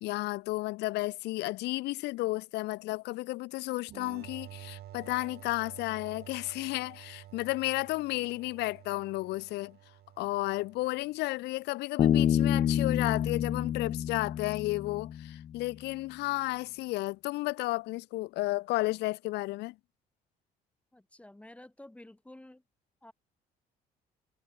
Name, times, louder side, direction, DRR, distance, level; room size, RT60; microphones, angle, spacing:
voice 1, 0.0-9.8 10.2-19.7, left 20 dB, 85° left, 0.8 m, -33 dB
sound 1, 3.9-11.3, right 13 dB, 65° right, 6.3 m, -51 dB
Bass guitar, 12.0-15.5, left 9 dB, 35° left, 0.4 m, -28 dB
voice 2, 20.9-22.6 23.0-23.1, left 1 dB, 5° left, 2.6 m, -51 dB
cardioid pair, 110°, 17 cm